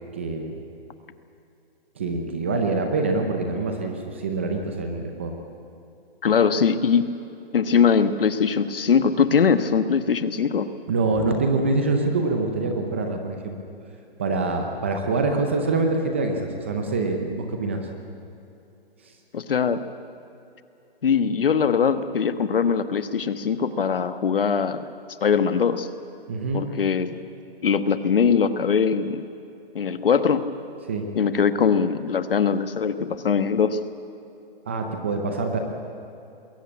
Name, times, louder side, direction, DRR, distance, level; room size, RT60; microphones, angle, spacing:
voice 1, 0.1-0.6 2.0-5.3 10.9-13.6 14.2-17.9 19.0-19.1 26.3-26.7 30.8-31.1 34.7-35.6, right 3 dB, 10° right, 4 dB, 0.6 m, -25 dB
voice 2, 6.2-7.1 7.5-10.7 19.3-19.8 21.0-24.8 25.2-25.9 26.5-27.2 27.6-29.2 29.7-30.4 31.2-33.8, left 6 dB, 60° left, 11 dB, 1.3 m, -21 dB
21.5 x 17.5 x 8.4 m, 2.8 s
hypercardioid pair, 170°, 31 cm